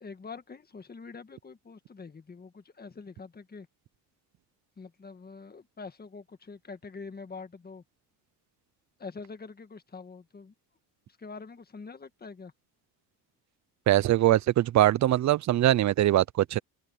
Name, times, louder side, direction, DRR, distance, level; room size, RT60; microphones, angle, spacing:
voice 1, 0.0-3.7 4.8-7.8 9.0-10.5 11.2-12.5, left 4 dB, 20° left, 1.7 m, -45 dB
voice 2, 13.9-16.6, right 13 dB, 40° right, 0.5 m, -22 dB
cardioid pair, 120°, 44 cm